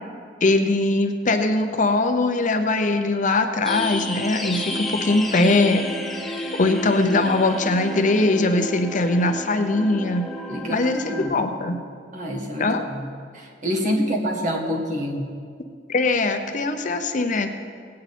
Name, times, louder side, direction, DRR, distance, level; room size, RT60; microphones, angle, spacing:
voice 1, 0.4-5.9 6.6-10.3 10.7-11.8 12.6-12.8 15.9-17.5, left 2 dB, 45° left, 6 dB, 0.7 m, -21 dB
sound 1, 3.6-11.3, equal, ahead, 0.9 m, -31 dB
voice 2, 10.5-11.8 12.1-15.3, equal, 45° right, -1 dB, 1.8 m, -28 dB
18.0 x 8.6 x 4.3 m, 2.1 s
head